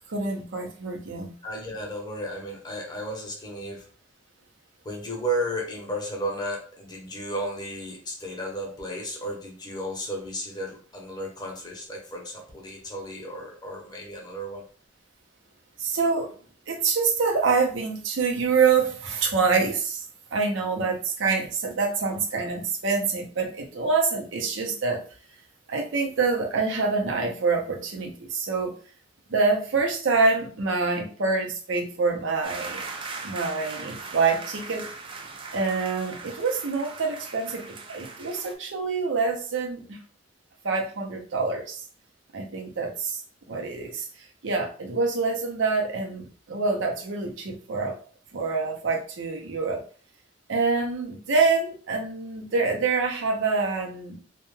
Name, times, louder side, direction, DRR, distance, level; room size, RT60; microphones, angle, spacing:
voice 1, 0.1-1.3 15.8-16.3 16.7-20.0 20.3-25.0 25.7-28.7 29.3-32.8 33.2-34.9 35.5-40.0 40.6-41.8 42.3-43.2 43.5-44.1 44.4-48.0 48.3-49.8 50.5-54.2, right 4 dB, 75° right, 2 dB, 0.6 m, -26 dB
voice 2, 1.4-3.9 4.8-14.6, right 1 dB, 20° left, 0 dB, 0.7 m, -33 dB
sound 1, 32.4-38.5, right 4 dB, 30° right, 0.3 m, -39 dB
2.2 x 2.2 x 3.1 m, 0.40 s
head